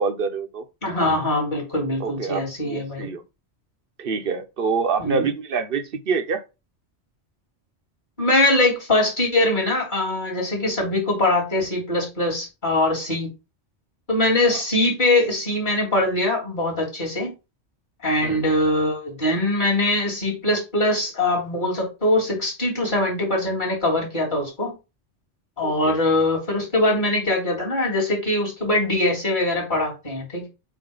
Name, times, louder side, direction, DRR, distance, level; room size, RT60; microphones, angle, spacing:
voice 1, 0.0-0.6 2.0-3.2 4.0-6.4 18.2-18.4 25.6-25.9, right 5 dB, 55° right, 1.0 m, -26 dB
voice 2, 0.8-3.1 5.0-5.3 8.2-13.3 14.1-17.3 18.0-24.7 25.6-30.5, left 1 dB, 40° left, 3.4 m, -22 dB
7.7 x 2.8 x 5.4 m
omnidirectional pair, 1.2 m